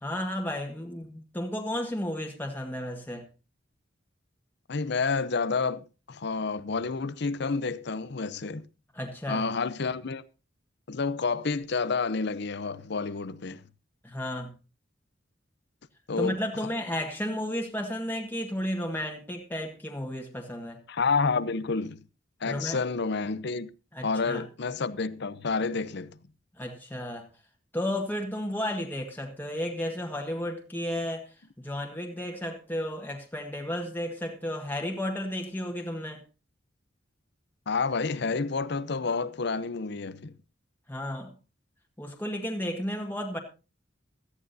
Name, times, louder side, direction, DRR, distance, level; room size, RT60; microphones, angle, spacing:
voice 1, 0.0-3.3 8.9-9.5 14.0-14.5 16.2-20.8 22.4-22.8 23.9-24.4 26.6-27.3 27.7-36.2 40.9-41.3 42.0-43.4, left 1 dB, 10° left, 1.6 m, -33 dB
voice 2, 4.7-8.6 9.3-10.2 10.9-13.6 16.1-16.7 20.9-22.0 22.4-23.7 24.0-26.2 37.7-40.3, left 4 dB, 65° left, 0.7 m, -29 dB
17.0 x 13.5 x 2.7 m
head